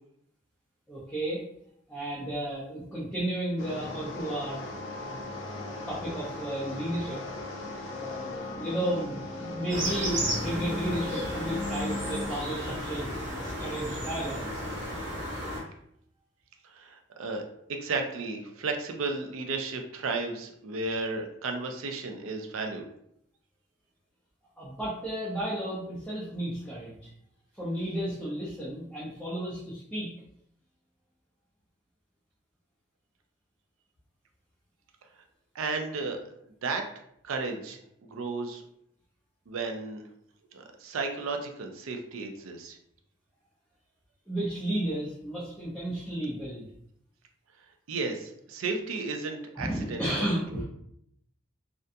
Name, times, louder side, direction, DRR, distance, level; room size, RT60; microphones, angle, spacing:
voice 1, 0.9-1.4 1.9-4.6 5.0-5.2 5.6-7.2 8.0-14.5 24.6-27.1 27.5-30.1 44.3-46.7 49.5-50.6, right 1 dB, 5° left, -9 dB, 0.5 m, -33 dB
sound 1, 3.6-12.3, left 2 dB, 75° left, 0.4 m, -37 dB
sound 2, 9.7-15.6, equal, 60° right, 0.9 m, -33 dB
voice 2, 16.7-22.8 35.5-36.2 36.6-36.8 37.2-37.8 38.1-38.6 39.5-40.0 40.5-42.8 47.9-50.3 50.5-50.6, right 3 dB, 90° right, 4 dB, 0.4 m, -33 dB
2.4 x 2.2 x 2.6 m, 0.73 s
head